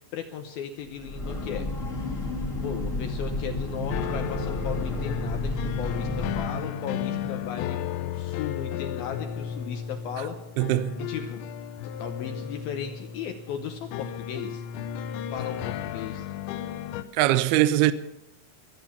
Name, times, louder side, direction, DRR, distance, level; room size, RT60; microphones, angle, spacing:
voice 1, 0.1-1.7 2.6-10.4 11.0-11.4 11.8-14.7 15.3-16.3, left 8 dB, 75° left, 2.3 m, -36 dB
Breathing / Train, 0.9-6.6, left 2 dB, 35° left, 1.3 m, -32 dB
sound 1, 1.8-7.4, equal, 55° left, 2.9 m, -38 dB
sound 2, 3.9-17.0, left 9 dB, 90° left, 3.1 m, -34 dB
voice 2, 10.6-11.1 17.1-17.9, right 14 dB, 80° right, 2.5 m, -22 dB
24.0 x 8.5 x 7.0 m
omnidirectional pair, 5.1 m